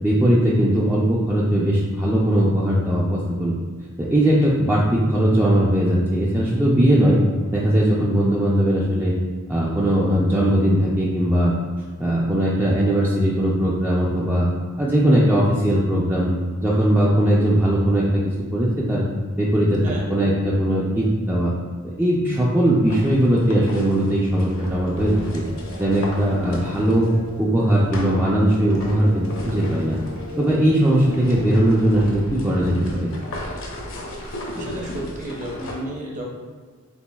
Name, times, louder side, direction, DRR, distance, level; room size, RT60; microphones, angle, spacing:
voice 1, 0.0-3.5 4.0-7.2 7.5-9.1 9.5-11.5 12.0-14.5 14.8-16.3 16.6-19.1 19.4-21.5 21.8-25.4 25.8-27.1 27.4-30.0 30.4-33.1, right 1 dB, 10° right, -6 dB, 0.4 m, -19 dB
sound 1, 22.7-27.3 27.9-35.7, left 1 dB, 70° left, 0.8 m, -37 dB
sound 2, 24.6-32.4, left 1 dB, 70° right, 1.2 m, -38 dB
voice 2, 34.5-36.3, right 1 dB, 35° right, -2 dB, 0.8 m, -32 dB
6.9 x 2.5 x 2.3 m, 1.5 s
head